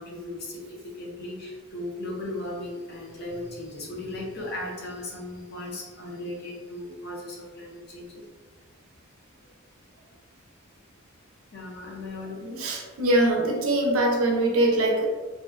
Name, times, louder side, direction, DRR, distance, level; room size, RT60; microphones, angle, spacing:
voice 1, 0.0-8.2 11.5-12.6, left 1 dB, 50° left, -3 dB, 0.6 m, -37 dB
voice 2, 12.6-15.1, right 1 dB, 75° right, -1 dB, 0.6 m, -22 dB
2.5 x 2.1 x 2.4 m, 1.4 s
head